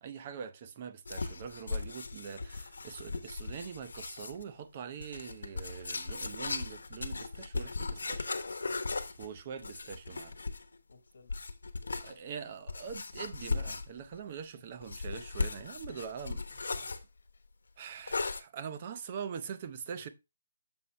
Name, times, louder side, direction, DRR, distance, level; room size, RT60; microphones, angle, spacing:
voice 1, 0.0-8.3 9.2-10.3 12.0-16.7 17.8-20.1, right 7 dB, 20° right, 0.5 m, -43 dB
sound 1, 1.1-4.4 5.0-10.8 11.3-12.1 12.7-14.1 14.8-17.0 18.1-18.4, left 3 dB, 80° left, 1.0 m, -37 dB
voice 2, 10.9-11.4 12.1-12.3 14.0-14.1 16.8-17.5 19.9-20.1, left 4 dB, 60° left, 1.3 m, -61 dB
7.0 x 2.9 x 5.4 m
hypercardioid pair, 180°, 0 cm